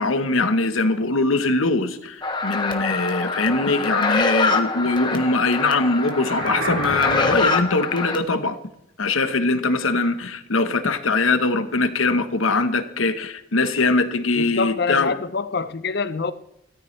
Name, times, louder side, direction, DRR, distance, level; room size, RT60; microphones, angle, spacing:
voice 1, 0.0-8.6 9.0-15.1, left 3 dB, 80° left, 1.1 m, -22 dB
sound 1, 2.2-8.2, left 3 dB, 20° left, 1.2 m, -25 dB
sound 2, 6.0-7.6, right 1 dB, 65° right, 3.0 m, -29 dB
voice 2, 14.4-16.3, left 4 dB, 55° left, 0.7 m, -25 dB
16.5 x 13.5 x 3.3 m
head